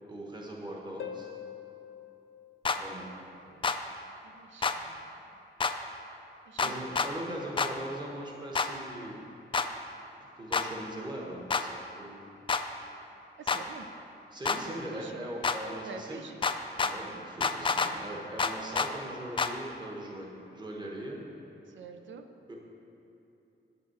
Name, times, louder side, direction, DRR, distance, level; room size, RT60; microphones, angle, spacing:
voice 1, 0.1-1.3 2.8-3.1 6.6-9.2 10.4-12.3 14.3-16.2 16.8-21.2 22.5-22.6, right 1 dB, 20° right, -2 dB, 1.2 m, -40 dB
Harp, 1.0-3.5 7.0-7.1, left 9 dB, 85° left, 0.6 m, -45 dB
sound 1, 2.6-2.8 3.6-3.8 4.6-4.8 5.6-5.7 6.6-7.1 7.6-7.7 8.5-8.7 9.5-9.7 10.5-10.7 11.5-11.6 12.5-12.6 13.5-13.6 14.4-14.6 15.4-15.6 16.4-16.9 17.4-17.9 18.4-18.9 19.4-19.5, left 5 dB, 25° left, 0.3 m, -27 dB
voice 2, 2.8-3.7 4.2-5.1 6.5-7.0 13.4-13.9 14.7-15.2 15.8-16.4 21.7-22.3, right 5 dB, 80° right, 7 dB, 0.6 m, -48 dB
9.0 x 5.9 x 7.7 m, 2.8 s
wide cardioid pair, 180°, 19 cm